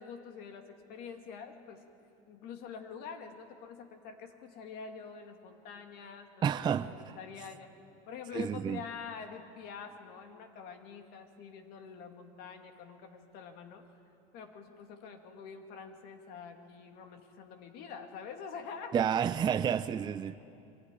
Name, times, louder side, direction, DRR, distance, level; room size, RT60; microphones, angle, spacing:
voice 1, 0.0-1.8 2.3-7.7 8.1-13.9 14.3-19.0 19.5-19.6, left 6 dB, 65° left, 2.2 m, -46 dB
voice 2, 6.4-7.2 8.3-8.8 18.9-20.4, right 8 dB, 25° right, 0.5 m, -30 dB
23.0 x 15.0 x 9.9 m
supercardioid pair, 120°, 17 cm